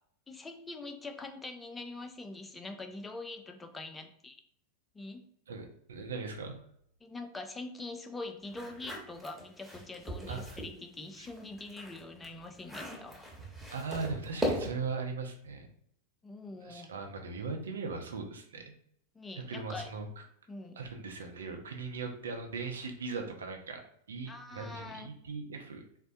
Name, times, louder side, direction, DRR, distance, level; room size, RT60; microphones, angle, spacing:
voice 1, 0.3-4.4 4.9-5.2 7.0-13.2 16.2-16.9 19.1-19.9 20.5-20.8 24.3-25.1, left 2 dB, 10° left, 6 dB, 0.4 m, -44 dB
voice 2, 5.5-6.6 10.3-10.6 11.2-11.3 13.7-15.7 16.6-18.6 19.4-20.1 20.8-23.8 24.1-25.8, right 4 dB, 65° right, 3 dB, 0.7 m, -39 dB
sound 1, 8.5-10.7 11.2-15.0, equal, 10° right, 1.1 m, -39 dB
4.1 x 2.1 x 2.6 m, 0.68 s
figure-of-eight pair, 90°, 0 cm